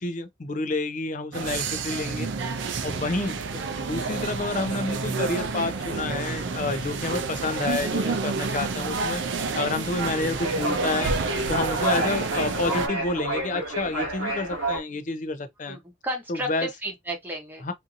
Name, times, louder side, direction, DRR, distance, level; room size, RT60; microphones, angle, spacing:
voice 1, 0.0-2.3 2.8-3.4 3.8-9.2 9.5-11.1 11.5-15.8 16.3-16.7 17.6-17.7, left 3 dB, 40° left, 0.5 m, -29 dB
sound 1, 1.3-12.9, right 4 dB, 60° right, 0.4 m, -29 dB
voice 2, 3.2-3.6 15.7-17.7, right 1 dB, 10° right, 0.8 m, -34 dB
sound 2, 5.4-14.8, right 1 dB, 90° right, 1.0 m, -31 dB
2.7 x 2.6 x 2.5 m
head